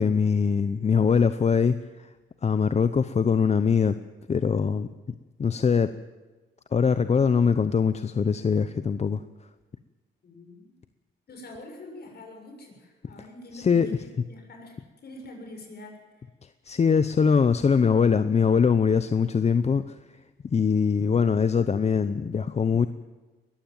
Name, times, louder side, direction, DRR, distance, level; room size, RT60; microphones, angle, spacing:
voice 1, 0.0-2.1 2.4-3.9 4.3-4.9 5.4-5.9 6.7-9.2 13.5-13.9 16.6-20.0 20.5-22.9, left 6 dB, 35° left, 12 dB, 0.8 m, -22 dB
voice 2, 10.2-10.7 11.3-16.3, left 2 dB, 55° left, 2 dB, 6.8 m, -45 dB
21.5 x 15.0 x 9.1 m, 1.2 s
cardioid pair, 90°, 20 cm